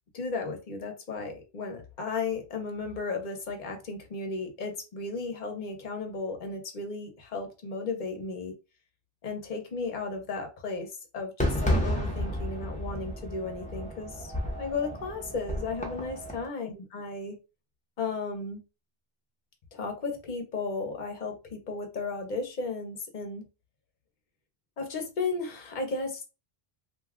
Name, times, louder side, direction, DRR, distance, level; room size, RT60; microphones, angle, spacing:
voice 1, 0.1-8.5 9.2-17.4 18.0-18.6 19.7-23.5 24.8-26.3, left 4 dB, 50° left, 4 dB, 0.9 m, -35 dB
Fireworks, 11.4-16.5, equal, 10° left, 0.8 m, -31 dB
2.7 x 2.3 x 3.5 m, 0.29 s
omnidirectional pair, 1.0 m